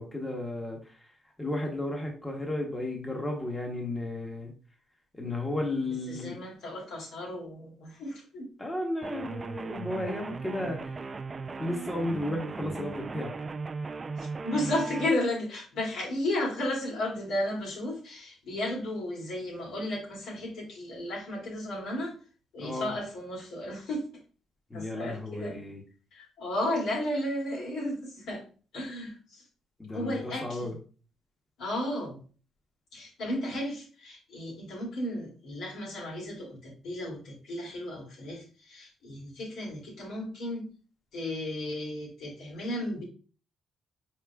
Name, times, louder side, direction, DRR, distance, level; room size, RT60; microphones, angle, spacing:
voice 1, 0.0-4.5 5.1-6.4 8.6-11.1 11.6-13.3 22.6-22.9 24.7-25.8 29.8-30.8, left 1 dB, 15° left, 1 dB, 1.1 m, -34 dB
voice 2, 6.1-8.5 14.2-22.2 22.5-24.1 24.7-25.6 26.1-28.4 28.7-29.4 29.9-30.7 31.6-32.2 32.9-40.6 41.1-43.0, left 1 dB, 80° left, -3 dB, 2.5 m, -34 dB
sound 1, 9.0-15.1, right 4 dB, 35° right, 0.3 m, -38 dB
4.9 x 4.5 x 2.3 m, 0.39 s
cardioid pair, 90°, 0 cm